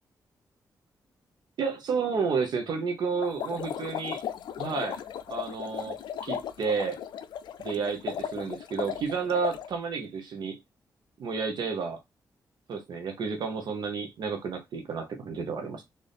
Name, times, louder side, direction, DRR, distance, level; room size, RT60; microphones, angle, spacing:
voice 1, 1.6-4.2 4.6-5.0 5.3-7.0 7.6-10.6 11.2-12.0 12.7-15.9, right 5 dB, 75° right, 0.8 m, -31 dB
sound 1, 3.2-9.7, left 9 dB, 85° left, 0.4 m, -36 dB
3.9 x 2.6 x 3.4 m
cardioid pair, 85°, 7 cm